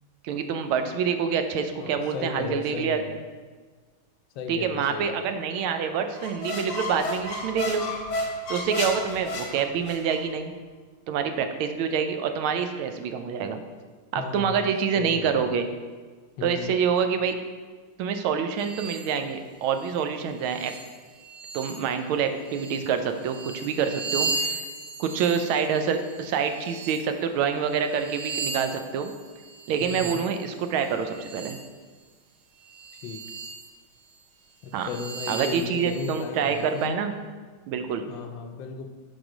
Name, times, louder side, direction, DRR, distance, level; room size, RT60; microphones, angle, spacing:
voice 1, 0.2-3.0 4.5-7.8 8.5-10.5 11.1-13.6 14.1-15.7 16.4-17.4 18.0-20.7 21.5-24.6 25.0-29.1 29.7-31.6 34.7-34.9 35.3-37.1 37.7-38.0, right 7 dB, 85° right, 7 dB, 1.4 m, -26 dB
voice 2, 1.8-3.2 4.3-5.4 14.1-15.6 16.4-16.8 29.8-30.2 33.0-33.2 34.6-37.0 38.1-38.9, left 5 dB, 75° left, 5 dB, 1.2 m, -35 dB
sound 1, 6.1-10.2, left 2 dB, 50° left, 1.0 m, -32 dB
sound 2, 18.6-19.2 19.8-19.9 20.4-22.0 22.4-27.1 27.7-31.7 32.6-33.7 34.1-34.2 34.8-36.9, right 4 dB, 65° right, 1.1 m, -36 dB
6.0 x 4.9 x 5.0 m, 1.4 s
omnidirectional pair, 2.3 m